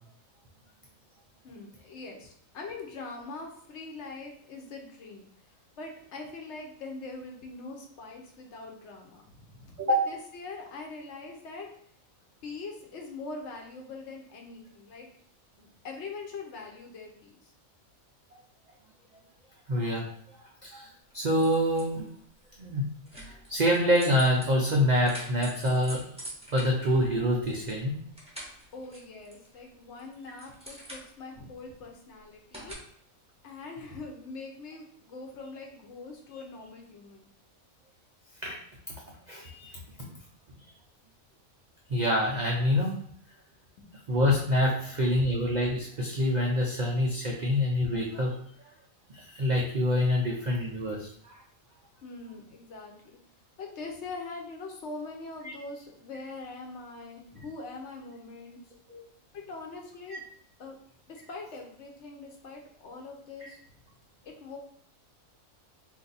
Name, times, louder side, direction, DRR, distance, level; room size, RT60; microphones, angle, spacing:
voice 1, 1.4-11.7 12.4-15.1 15.6-17.5 28.7-32.8 33.4-37.3 43.8-43.9 44.8-45.0 52.0-52.9 53.6-58.6 59.3-60.2 60.6-60.8 61.1-63.6 64.2-64.6, left 3 dB, 65° left, 2 dB, 0.9 m, -43 dB
voice 2, 19.7-20.1 20.3-20.9 21.1-22.1 22.6-22.8 23.2-26.0 26.5-28.0 38.4-38.6 39.3-39.8 41.9-43.0 44.1-48.4 49.1-51.4 55.4-55.5 58.9-59.0 60.1-60.2 63.4-63.5, left 1 dB, 80° right, -2 dB, 0.4 m, -26 dB
sound 1, 21.1-22.2 23.1-27.8 28.0-29.6 30.0-31.4 32.5-32.7, right 1 dB, 5° right, 0.5 m, -45 dB
2.6 x 2.5 x 3.9 m, 0.65 s
omnidirectional pair, 1.4 m